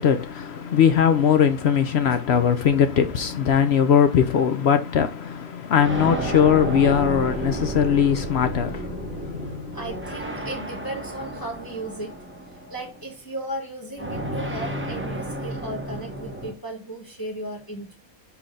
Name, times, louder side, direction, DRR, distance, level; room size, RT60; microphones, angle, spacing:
voice 1, 0.0-9.8, left 8 dB, 60° left, 0.7 m, -20 dB
sound 1, 0.9-3.6 4.5-4.6 5.8-13.1 14.0-16.5, right 1 dB, 10° right, 0.6 m, -32 dB
voice 2, 9.7-12.1 12.7-18.0, right 1 dB, 15° left, 1.3 m, -35 dB
4.8 x 4.2 x 5.1 m
omnidirectional pair, 1.5 m